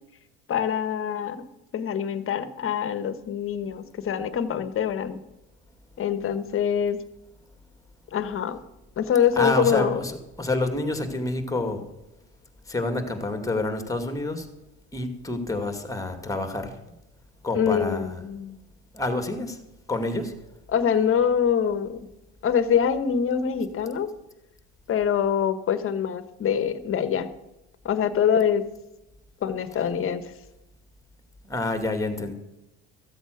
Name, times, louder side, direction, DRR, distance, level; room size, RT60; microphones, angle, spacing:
voice 1, 0.5-1.4 1.7-5.2 6.0-7.0 8.1-8.6 9.0-10.0 17.5-18.6 20.7-22.1 22.4-24.1 24.9-27.3 27.8-28.6 29.4-30.3, left 8 dB, 40° left, 12 dB, 1.3 m, -24 dB
voice 2, 9.4-11.9 12.6-14.5 14.9-16.9 17.4-18.2 18.9-19.6 19.9-20.3 31.4-32.3, left 2 dB, 10° left, 7 dB, 2.3 m, -28 dB
14.5 x 8.1 x 6.4 m, 0.92 s
supercardioid pair, 100°, 33 cm